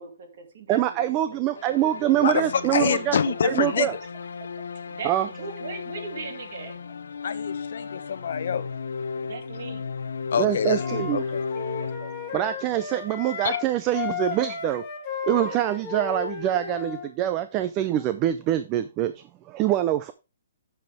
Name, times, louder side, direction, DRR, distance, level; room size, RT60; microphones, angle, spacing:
voice 1, 0.0-1.9 2.4-2.5 4.9-6.8 9.2-9.9, right 4 dB, 40° right, 2.3 m, -39 dB
voice 2, 0.7-3.2 3.4-4.0 5.0-5.3 10.4-11.2 12.0-14.9 15.3-20.1, right 13 dB, 15° right, 0.4 m, -25 dB
sound 1, 1.6-12.7, left 5 dB, 85° left, 0.7 m, -35 dB
voice 3, 2.2-4.0 7.2-8.7 10.3-11.4 13.4-13.6, left 7 dB, 50° left, 0.8 m, -26 dB
Wind instrument woodwind instrument, 10.7-13.6 13.9-17.1, left 7 dB, 15° left, 1.7 m, -34 dB
9.5 x 6.9 x 3.5 m
hypercardioid pair, 180°, 0 cm